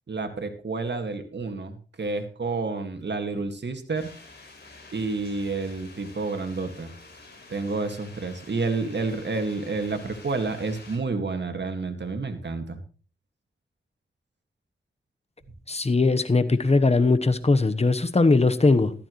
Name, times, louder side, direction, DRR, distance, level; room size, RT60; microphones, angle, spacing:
voice 1, 0.1-4.1 4.9-6.9 7.5-12.8, right 3 dB, 55° right, 7 dB, 2.1 m, -29 dB
sound 1, 3.9-11.0, left 3 dB, 55° left, 5.8 m, -48 dB
voice 2, 15.7-18.9, left 3 dB, 30° left, 11 dB, 1.2 m, -20 dB
14.5 x 12.0 x 3.2 m, 0.39 s
cardioid pair, 55°, 21 cm